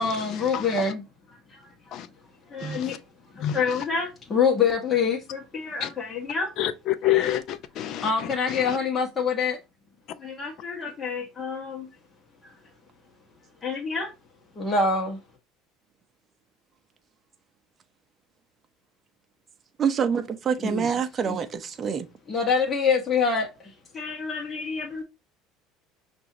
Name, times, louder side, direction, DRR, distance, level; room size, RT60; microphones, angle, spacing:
voice 1, 0.0-1.7 2.5-3.0 3.3-6.5 8.0-9.6 10.2-11.9 13.6-14.1 14.5-15.2 20.6-20.9 21.2-21.4 22.3-25.0, left 5 dB, 25° left, 1.3 m, -26 dB
voice 2, 2.6-3.0 3.4-3.6 5.8-5.9 6.6-8.1, left 12 dB, 55° left, 0.6 m, -26 dB
voice 3, 19.8-22.1, right 7 dB, 30° right, 0.7 m, -26 dB
6.1 x 2.6 x 2.8 m
supercardioid pair, 125°, 0 cm